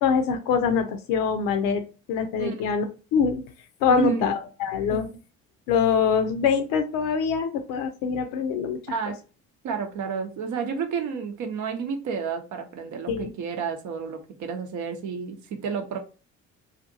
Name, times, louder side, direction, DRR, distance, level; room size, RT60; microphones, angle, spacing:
voice 1, 0.0-1.8 2.1-3.4 3.8-5.1 5.7-8.8 13.1-13.3, left 6 dB, 60° left, 8 dB, 0.6 m, -24 dB
voice 2, 2.4-2.7 3.9-4.2 4.9-5.2 8.9-9.2 9.6-16.0, right 6 dB, 50° right, 5 dB, 0.7 m, -31 dB
2.5 x 2.4 x 2.6 m, 0.34 s
figure-of-eight pair, 50°, 38 cm